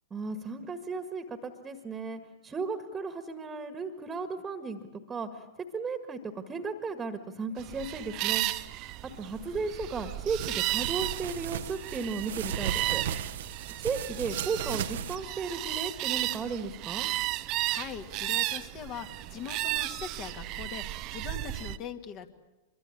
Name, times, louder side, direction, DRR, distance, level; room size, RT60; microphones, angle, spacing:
voice 1, 0.1-5.4 5.7-8.5 9.0-13.0 13.8-17.1, right 4 dB, 15° right, 9 dB, 1.8 m, -35 dB
sound 1, 7.6-21.8, right 18 dB, 40° right, 0.8 m, -34 dB
sound 2, 10.4-15.2, right 9 dB, 60° right, 1.1 m, -36 dB
voice 2, 17.7-22.3, left 8 dB, 35° left, 6 dB, 2.1 m, -41 dB
25.0 x 23.0 x 8.6 m, 1.1 s
figure-of-eight pair, 100°, 0 cm